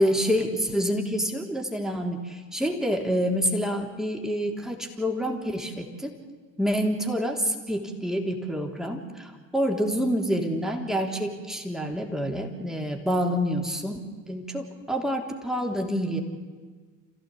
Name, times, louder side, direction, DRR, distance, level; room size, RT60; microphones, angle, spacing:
voice 1, 0.0-6.2 6.6-16.2, equal, ahead, 2 dB, 3.3 m, -27 dB
30.0 x 15.5 x 8.6 m, 1.5 s
figure-of-eight pair, 65°, 39 cm